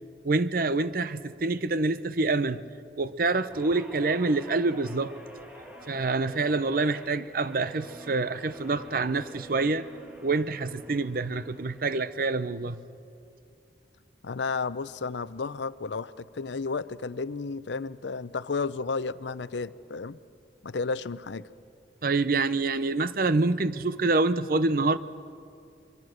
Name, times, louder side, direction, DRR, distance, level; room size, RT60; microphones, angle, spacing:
voice 1, 0.2-2.6 3.0-5.2 5.9-9.9 10.2-12.8 22.0-25.0, right 3 dB, 50° right, 0.7 m, -26 dB
Guitar, 3.5-12.1 12.5-12.8, right 1 dB, 10° right, 2.4 m, -48 dB
voice 2, 14.2-20.2 20.6-21.5, left 4 dB, 80° left, 0.6 m, -32 dB
25.0 x 23.5 x 6.5 m
head